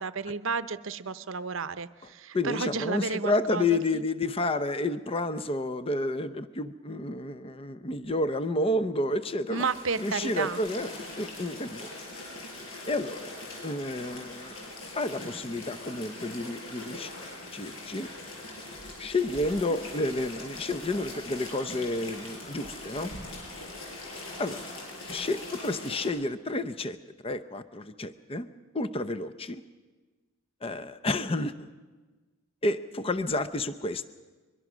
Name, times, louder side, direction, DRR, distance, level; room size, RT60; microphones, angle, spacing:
voice 1, 0.0-4.1 9.5-10.6 19.7-19.8, right 5 dB, 65° right, 14 dB, 0.7 m, -32 dB
voice 2, 2.3-9.6 10.0-11.9 12.9-13.3 13.6-17.1 17.5-18.1 19.0-23.1 24.4-24.6 25.1-27.0 27.2-28.5 28.7-29.6 30.6-31.7 32.6-34.1, left 2 dB, 25° left, 12 dB, 0.6 m, -30 dB
sound 1, 9.6-26.1, left 2 dB, 75° left, 6.6 m, -42 dB
23.0 x 22.5 x 6.2 m, 1.3 s
head